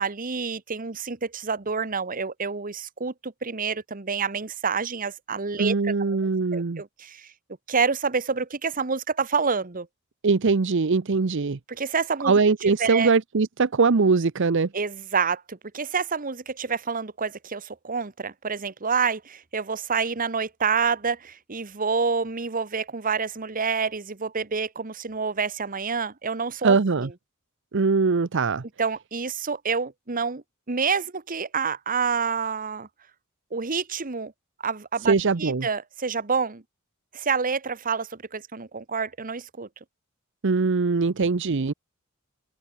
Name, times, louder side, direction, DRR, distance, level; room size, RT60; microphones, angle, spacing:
voice 1, 0.0-7.3 7.7-9.9 11.8-13.1 14.7-27.1 28.8-32.9 33.5-34.3 34.6-35.1 35.4-36.6 37.1-39.7, right 5 dB, 40° right, 1.3 m, -28 dB
voice 2, 5.6-6.8 10.2-11.6 12.2-14.7 26.6-27.1 27.7-28.6 35.0-35.7 40.4-41.7, right 4 dB, 65° right, 0.7 m, -22 dB
head